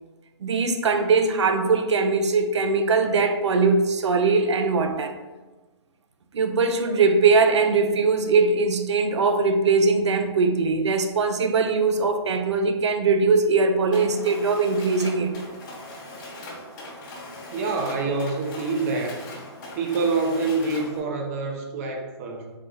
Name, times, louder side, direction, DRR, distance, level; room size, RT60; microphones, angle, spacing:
voice 1, 0.4-5.1 6.3-15.3, right 4 dB, 85° right, 0.5 m, -21 dB
Mechanisms, 13.9-21.0, left 1 dB, 45° left, 1.0 m, -40 dB
voice 2, 17.5-19.3 19.7-22.5, right 3 dB, 30° right, 0.6 m, -26 dB
3.9 x 2.8 x 3.1 m
hypercardioid pair, 150°, 14 cm